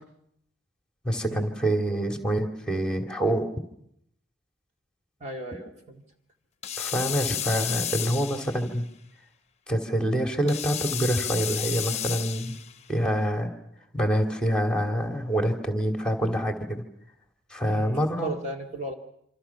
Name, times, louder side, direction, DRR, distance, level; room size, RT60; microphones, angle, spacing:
voice 1, 1.0-3.5 6.8-8.9 9.7-12.6 12.9-13.5 13.9-16.8 17.5-18.3, right 1 dB, 5° left, 4 dB, 2.4 m, -26 dB
voice 2, 5.2-6.0 17.7-18.9, right 2 dB, 35° right, 2 dB, 2.1 m, -36 dB
sound 1, 6.6-8.8 10.5-12.8, left 10 dB, 35° left, 1.0 m, -32 dB
27.0 x 26.0 x 5.8 m, 0.76 s
head